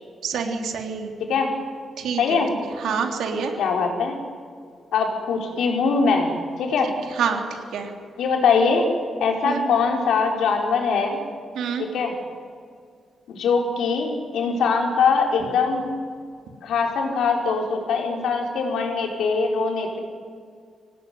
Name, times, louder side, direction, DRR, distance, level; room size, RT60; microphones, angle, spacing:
voice 1, 0.2-1.1 2.0-2.4 2.8-3.5 7.1-7.4 7.7-7.9 9.4-9.7 11.5-11.9, right 6 dB, 85° right, 3 dB, 3.4 m, -26 dB
voice 2, 2.2-2.5 3.6-4.2 4.9-6.3 6.6-6.9 8.2-8.9 9.2-11.2 11.8-12.1 13.3-15.9 16.6-20.0, left 5 dB, 90° left, 2 dB, 4.6 m, -22 dB
25.0 x 18.0 x 9.7 m, 2.2 s
wide cardioid pair, 180°, 0 cm